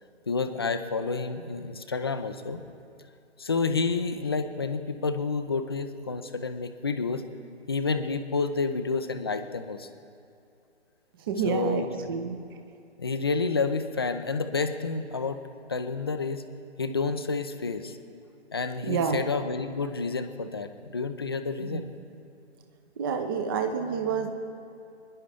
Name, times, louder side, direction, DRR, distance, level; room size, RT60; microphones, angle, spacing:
voice 1, 0.3-2.6 3.4-7.2 7.7-9.9 11.4-11.9 13.0-15.4 15.7-16.4 16.8-18.0 18.5-21.8, left 4 dB, 20° left, 9 dB, 0.4 m, -29 dB
voice 2, 11.3-12.4 18.9-19.2 21.7-21.8 23.0-24.3, right 6 dB, 20° right, 5 dB, 0.7 m, -28 dB
25.5 x 11.0 x 3.5 m, 2.6 s
figure-of-eight pair, 145°, 35 cm